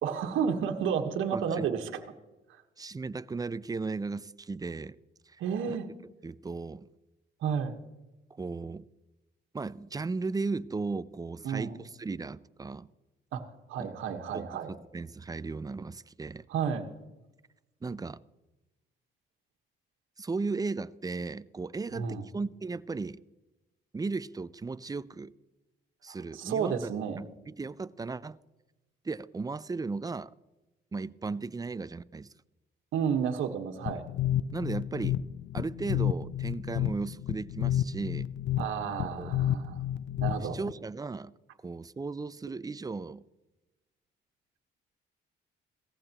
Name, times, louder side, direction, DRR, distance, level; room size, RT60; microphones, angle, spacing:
voice 1, 0.0-1.9 5.4-5.9 7.4-7.8 11.4-11.8 13.3-13.4 13.7-14.7 16.5-16.9 21.9-22.2 26.3-27.2 32.9-34.0 38.6-39.8 40.2-40.6, right 7 dB, 85° right, 4 dB, 1.4 m, -31 dB
voice 2, 1.3-1.7 2.8-5.0 5.3-5.4 5.7-5.8 6.2-6.9 8.3-8.9 9.5-12.9 13.8-14.0 14.3-16.4 17.8-18.2 20.2-23.2 23.9-25.3 26.0-26.9 27.2-28.4 29.0-30.3 30.9-32.3 34.5-35.2 35.5-38.3 39.2-39.3 40.4-41.3 41.6-43.2, right 4 dB, 20° right, 17 dB, 0.5 m, -36 dB
sound 1, 33.9-40.7, left 11 dB, 70° left, 0.5 m, -31 dB
17.5 x 14.5 x 3.0 m, 1.0 s
cardioid pair, 90°, 20 cm